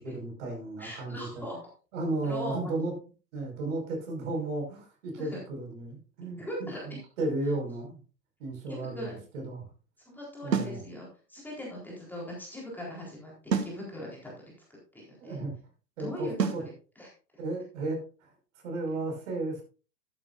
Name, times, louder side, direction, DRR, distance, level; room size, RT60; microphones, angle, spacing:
voice 1, 0.0-1.5 1.9-2.9 3.3-8.0 8.4-9.7 10.4-10.8 15.2-15.5 16.0-16.6 17.4-18.3 18.6-19.6, right 2 dB, 50° right, 1 dB, 5.5 m, -34 dB
voice 2, 0.8-1.6 2.2-2.7 5.2-5.4 6.4-7.0 8.7-9.2 10.1-14.5 14.9-15.4 16.0-17.1, left 1 dB, 5° left, -4 dB, 4.0 m, -40 dB
sound 1, 10.5-10.8 13.5-13.8 16.4-16.7, right 6 dB, 75° right, 1.4 m, -28 dB
12.5 x 11.0 x 2.6 m, 0.36 s
figure-of-eight pair, 105°, 50 cm